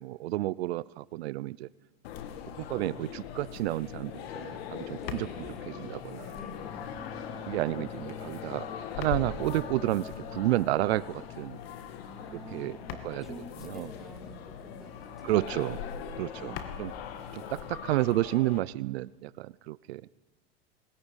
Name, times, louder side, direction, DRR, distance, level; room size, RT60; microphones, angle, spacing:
voice 1, 0.0-1.7 2.6-5.3 5.7-6.3 7.5-8.6 9.0-11.6 12.5-12.8 13.0-13.3 13.7-13.9 15.2-15.8 16.2-16.9 17.3-20.0, right 17 dB, 80° right, 20 dB, 0.7 m, -31 dB
sound 1, 2.0-18.6, left 8 dB, 75° left, 2.7 m, -40 dB
voice 2, 5.0-5.7 6.3-6.8 12.0-15.7 16.3-17.3, right 1 dB, ahead, 2 dB, 3.5 m, -50 dB
Bowed string instrument, 6.5-12.0, left 4 dB, 15° left, 1.2 m, -47 dB
21.5 x 21.0 x 9.9 m, 1.2 s
supercardioid pair, 125°, 31 cm